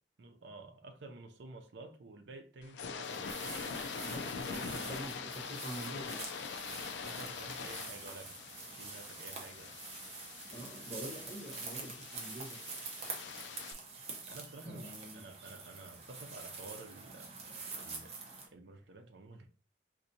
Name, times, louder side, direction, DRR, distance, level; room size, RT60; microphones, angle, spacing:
voice 1, 0.2-3.4 4.5-4.8 7.0-8.4 8.7-9.7 14.3-18.1 18.5-19.5, right 2 dB, 80° right, 0.6 m, -51 dB
sound 1, 2.6-13.7, left 6 dB, 85° left, 0.4 m, -44 dB
sound 2, 3.0-18.5, right 4 dB, 35° right, 0.7 m, -46 dB
voice 2, 4.0-6.2 10.5-12.6 14.6-15.2, right 1 dB, 15° left, 1.2 m, -46 dB
4.1 x 2.6 x 2.7 m
head